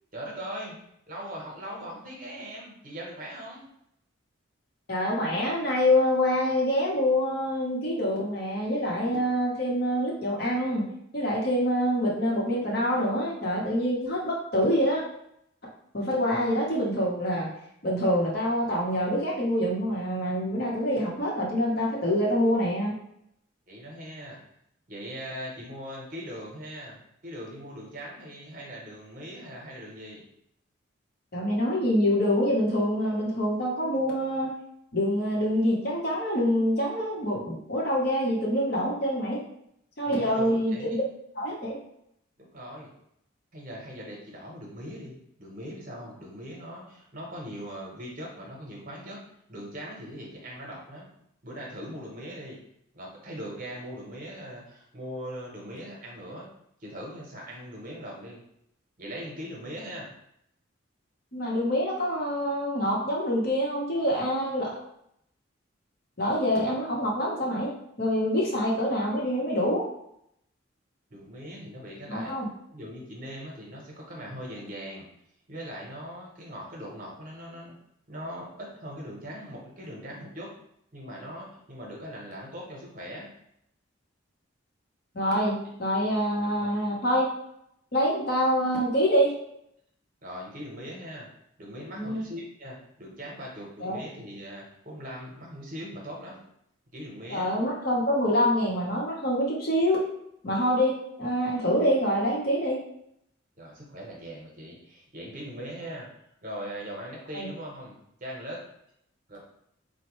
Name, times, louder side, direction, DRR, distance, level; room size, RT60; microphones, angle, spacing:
voice 1, 0.1-0.7 1.1-3.6 23.7-24.4 24.9-30.2 40.0-40.9 42.4-42.9 43.5-49.2 49.5-51.1 51.4-52.6 52.9-56.5 56.8-58.4 59.0-60.1 71.1-72.3 72.7-75.1 75.5-77.7 78.1-80.5 80.9-83.3 86.3-86.7 90.2-91.3 91.6-96.4 96.9-97.5 103.6-106.1 106.4-108.6 109.3-109.4, equal, 40° right, -2 dB, 0.9 m, -40 dB
voice 2, 4.9-10.9 11.1-15.0 15.9-17.5 17.8-22.9 31.3-34.5 34.9-39.4 40.0-41.0 41.4-41.8 61.3-64.8 66.2-67.7 68.0-69.9 72.1-72.5 85.1-87.3 87.9-89.3 92.0-92.3 93.8-94.0 97.3-100.1 100.4-102.8 107.3-107.5, equal, 50° left, -3 dB, 0.9 m, -26 dB
4.2 x 2.2 x 3.0 m, 0.75 s
head